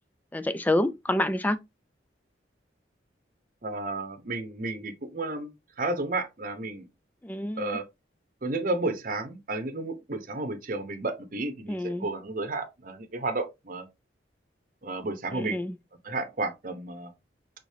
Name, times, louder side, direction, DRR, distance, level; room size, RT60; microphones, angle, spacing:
voice 1, 0.3-1.6 7.2-7.8 11.7-12.1 15.3-15.8, left 1 dB, 10° left, 0.3 m, -28 dB
voice 2, 3.6-6.9 7.6-7.8 8.4-13.9 14.8-15.6 16.0-17.1, right 2 dB, 50° right, 0.8 m, -32 dB
4.9 x 3.8 x 2.7 m
head